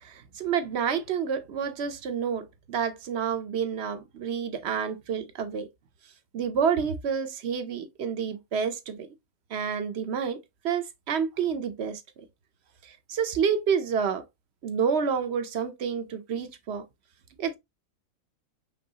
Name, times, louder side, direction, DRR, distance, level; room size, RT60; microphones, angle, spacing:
voice 1, 0.0-5.7 6.3-9.1 9.5-10.4 10.6-12.0 12.8-14.2 14.6-16.8 17.4-17.6, right 7 dB, 55° right, 0.9 m, -29 dB
5.4 x 3.2 x 2.8 m
omnidirectional pair, 1.4 m